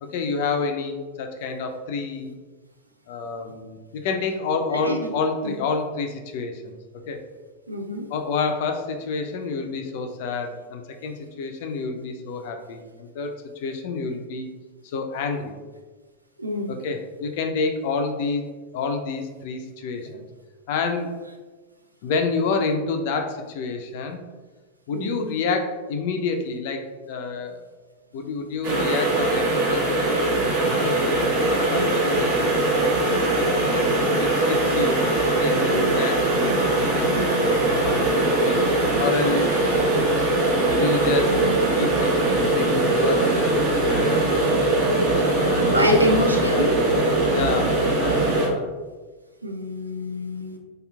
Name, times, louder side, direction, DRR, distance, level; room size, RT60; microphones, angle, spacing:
voice 1, 0.0-2.3 3.1-6.7 7.1-7.2 8.1-14.5 14.8-15.6 16.7-18.4 18.7-20.2 20.7-21.1 22.0-24.2 24.9-27.6 28.1-29.9 30.4-32.6 33.4-35.0 35.4-38.6 39.0-39.7 40.3-41.4 41.7-42.1 42.4-44.5 45.4-45.9 46.4-46.7 47.3-48.7, left 4 dB, 50° left, 5 dB, 0.4 m, -29 dB
voice 2, 4.7-5.1 5.4-5.5 7.7-8.1 16.4-16.8 24.9-25.3 45.7-46.8 49.4-50.6, equal, 85° right, 2 dB, 0.4 m, -25 dB
sound 1, 28.6-48.5, right 2 dB, 50° right, 0.9 m, -21 dB
3.4 x 2.9 x 2.2 m, 1.3 s
figure-of-eight pair, 90°, 0 cm